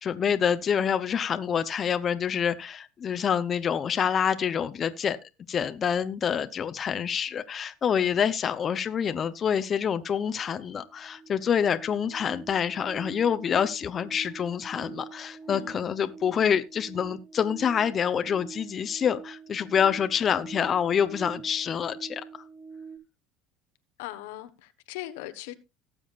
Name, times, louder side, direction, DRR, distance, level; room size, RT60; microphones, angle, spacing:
voice 1, 0.0-5.2 5.5-22.2, left 7 dB, 35° left, 0.9 m, -27 dB
sound 1, 9.4-9.5 9.8-23.0, right 5 dB, 15° right, 3.3 m, -46 dB
voice 2, 15.5-15.9 24.0-25.5, left 15 dB, 85° left, 1.2 m, -39 dB
18.5 x 7.1 x 2.5 m
supercardioid pair, 110°, 0 cm